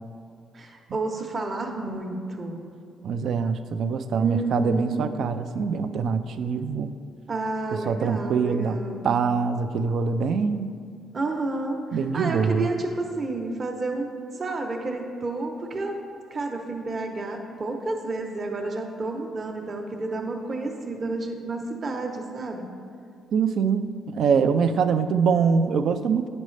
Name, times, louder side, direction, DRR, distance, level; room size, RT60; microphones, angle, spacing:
voice 1, 0.5-2.6 4.2-5.0 7.3-9.1 11.1-14.1 14.3-16.0 16.3-22.7, right 2 dB, 40° right, 2 dB, 0.8 m, -30 dB
voice 2, 3.0-6.9 7.9-8.8 9.0-10.7 11.9-12.7 23.3-26.3, right 6 dB, 70° right, 10 dB, 0.3 m, -24 dB
9.7 x 5.2 x 3.2 m, 2.3 s
cardioid pair, 90°, 0 cm